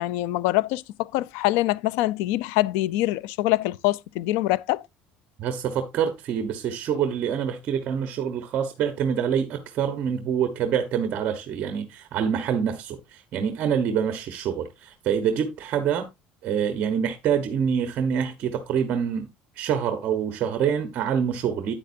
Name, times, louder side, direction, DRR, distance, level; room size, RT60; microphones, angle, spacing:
voice 1, 0.0-4.8, left 17 dB, 80° left, 0.5 m, -24 dB
voice 2, 5.4-16.1 16.4-19.3 19.6-21.7, right 8 dB, 45° right, 1.1 m, -26 dB
9.5 x 8.9 x 2.7 m
cardioid pair, 155°, 4 cm